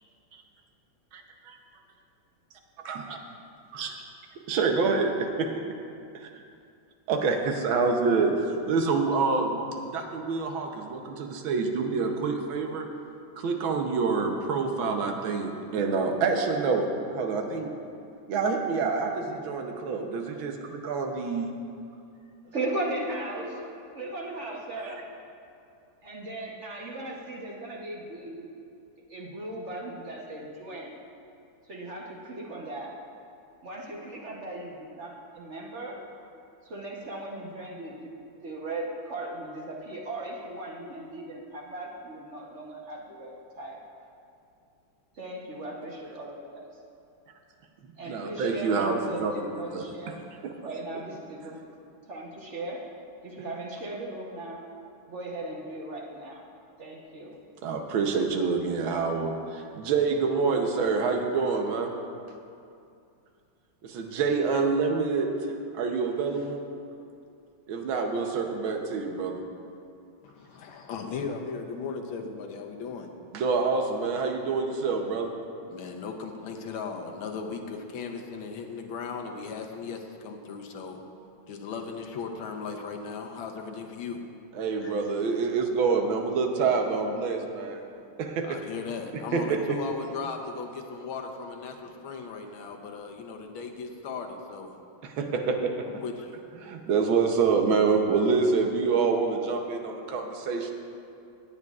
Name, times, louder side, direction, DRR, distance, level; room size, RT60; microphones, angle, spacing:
voice 1, 4.5-5.5 6.1-6.3 7.1-12.9 13.4-16.9 17.1-17.7 18.3-21.5 47.8-49.3 49.7-49.8 50.4-50.5 57.6-61.9 63.8-65.3 65.7-66.6 67.7-69.4 73.3-75.3 84.5-87.8 88.2-88.6 89.1-89.8 95.0-95.7 96.6-100.7, right 4 dB, 80° right, 3 dB, 1.7 m, -27 dB
voice 2, 22.4-23.6 23.9-25.0 26.0-28.5 29.1-30.9 31.7-33.0 33.6-36.2 36.6-43.8 45.1-46.6 48.0-50.2 50.6-51.6 52.1-52.9 53.2-54.6 55.1-56.4 56.8-57.4, right 2 dB, 45° right, -2 dB, 1.1 m, -37 dB
voice 3, 70.2-73.1 74.3-74.4 75.7-81.0 81.5-84.2 84.8-84.9 88.4-94.8 95.9-96.4 97.2-97.3, left 5 dB, 80° left, 3 dB, 1.7 m, -37 dB
17.0 x 9.5 x 2.4 m, 2.5 s
omnidirectional pair, 2.2 m